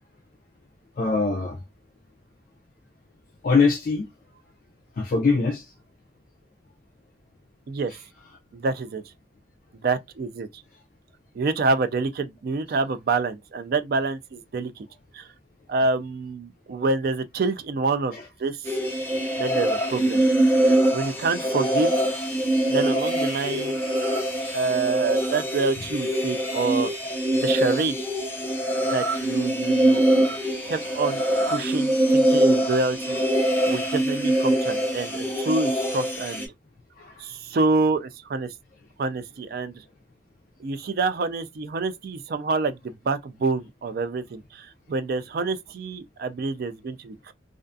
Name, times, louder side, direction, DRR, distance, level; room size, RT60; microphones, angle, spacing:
voice 1, 1.0-1.6 3.4-4.1 5.0-5.6 18.1-18.2 33.6-33.7 37.0-37.1, left 4 dB, 50° left, 0.4 m, -22 dB
voice 2, 7.7-8.0 8.5-9.0 9.7-10.6 11.3-14.9 15.1-15.3 15.7-18.1 18.4-18.6 19.4-20.2 20.6-22.0 22.7-23.8 24.5-26.9 27.3-28.0 28.9-30.4 30.6-36.5 37.2-38.5 39.0-39.8 40.6-47.3, right 3 dB, 55° right, 0.3 m, -27 dB
sound 1, 18.7-36.5, right 1 dB, 15° left, 0.6 m, -23 dB
2.4 x 2.3 x 2.5 m
head